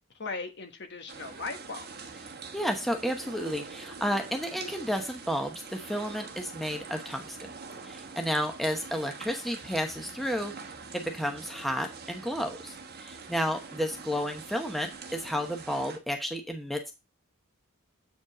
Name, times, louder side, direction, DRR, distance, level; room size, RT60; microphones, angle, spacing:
voice 1, 0.2-2.1 11.3-11.4, left 4 dB, 55° left, 6 dB, 1.4 m, -38 dB
sound 1, 1.1-16.0, right 4 dB, 50° right, 1.2 m, -44 dB
voice 2, 2.5-7.4 7.8-10.5 10.9-16.9, equal, ahead, 3 dB, 1.0 m, -32 dB
8.1 x 5.2 x 4.9 m, 0.27 s
head